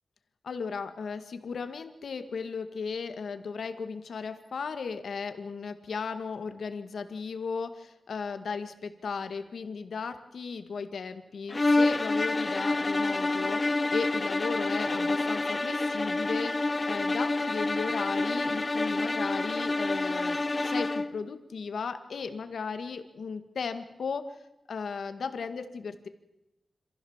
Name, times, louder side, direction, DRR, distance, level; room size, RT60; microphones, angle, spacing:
voice 1, 0.4-24.4 24.7-26.1, left 5 dB, 85° left, 9 dB, 1.8 m, -36 dB
sound 1, 11.5-21.2, left 2 dB, 30° left, 0.9 m, -28 dB
26.5 x 15.5 x 7.3 m, 0.96 s
wide cardioid pair, 115°, 0 cm